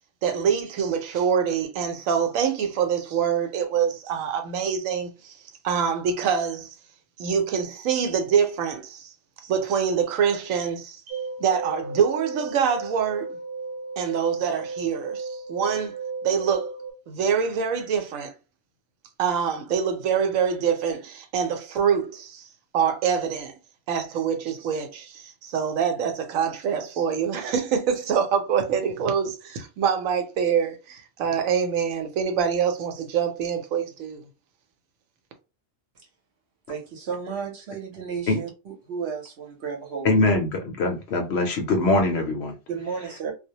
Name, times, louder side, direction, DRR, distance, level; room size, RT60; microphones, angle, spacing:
voice 1, 0.2-5.3 5.6-6.7 7.2-9.1 9.4-13.4 14.0-16.0 16.2-16.7 17.1-18.3 19.2-22.5 22.7-23.5 23.9-34.3, right 7 dB, 85° right, 1.0 m, -25 dB
sound 1, 11.1-16.9, right 4 dB, 20° right, 1.1 m, -34 dB
voice 2, 36.7-40.3 42.7-43.3, right 6 dB, 60° right, 0.9 m, -33 dB
voice 3, 40.0-42.5, left 2 dB, 65° left, 0.7 m, -22 dB
2.3 x 2.0 x 2.7 m
omnidirectional pair, 1.4 m